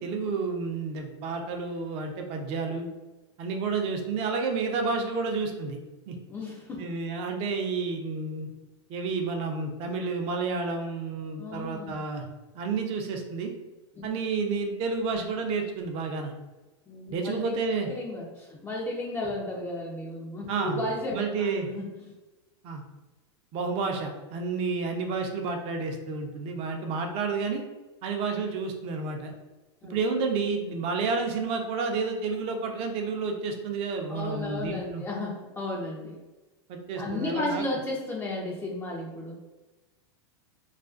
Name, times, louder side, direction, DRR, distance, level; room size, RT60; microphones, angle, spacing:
voice 1, 0.0-2.9 3.4-5.8 6.1-6.2 6.8-8.5 8.9-12.2 12.5-13.5 14.0-16.3 17.1-17.9 20.5-20.8 21.1-21.7 22.6-22.8 23.5-27.6 28.0-29.3 29.8-35.0 36.7-37.7, right 4 dB, 40° right, 4 dB, 0.5 m, -30 dB
voice 2, 6.3-6.8 11.4-12.0 14.0-14.1 16.9-17.5 17.9-21.9 29.8-30.0 34.1-36.2 36.9-39.3, left 2 dB, 15° left, -4 dB, 0.4 m, -34 dB
2.4 x 2.3 x 2.4 m, 1.1 s
hypercardioid pair, 125°, 15 cm